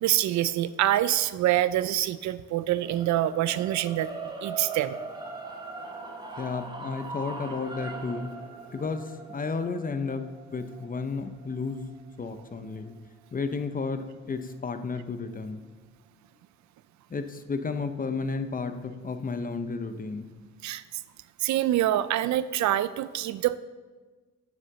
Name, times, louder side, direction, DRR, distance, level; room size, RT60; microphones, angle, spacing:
voice 1, 0.0-4.1 4.4-5.0 20.6-20.8 21.4-23.6, right 13 dB, 70° right, 16 dB, 0.5 m, -25 dB
sound 1, 2.7-12.9, right 4 dB, 15° right, 1.3 m, -41 dB
voice 2, 6.4-8.3 8.7-11.9 12.2-12.9 13.3-15.6 17.1-20.3, left 4 dB, 30° left, 9 dB, 0.7 m, -32 dB
7.4 x 6.6 x 6.6 m, 1.3 s
cardioid pair, 90°, 30 cm